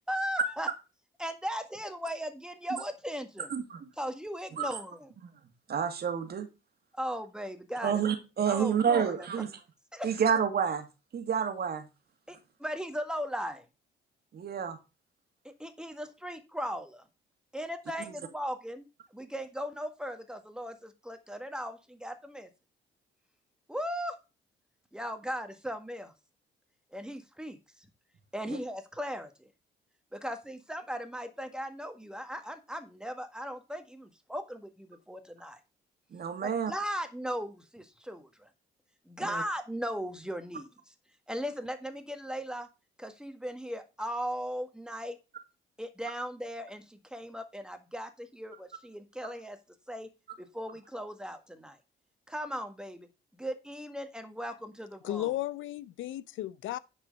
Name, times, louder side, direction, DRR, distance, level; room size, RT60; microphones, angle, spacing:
voice 1, 0.1-0.7 1.2-3.5 4.0-5.1 6.9-8.1 8.5-9.3 9.9-10.1 12.3-13.6 15.4-17.0 17.5-18.9 19.1-22.5 23.7-24.2 24.9-26.1 26.9-27.6 28.3-29.5 30.1-35.6 36.4-38.5 39.0-40.9 41.3-42.7 43.0-45.2 45.8-49.6 49.9-50.1 50.4-51.8 52.3-53.1 53.3-55.3, equal, 5° right, 1.6 m, -37 dB
voice 2, 3.5-3.8 4.6-4.7 5.2-5.3 5.7-6.5 7.8-9.5 10.0-10.9 11.1-11.9 14.3-14.8 28.5-28.6 36.1-36.7 39.2-39.4, right 7 dB, 55° right, 2.0 m, -29 dB
voice 3, 55.0-56.8, left 14 dB, 80° left, 0.6 m, -34 dB
9.9 x 4.7 x 5.3 m
cardioid pair, 90°, 20 cm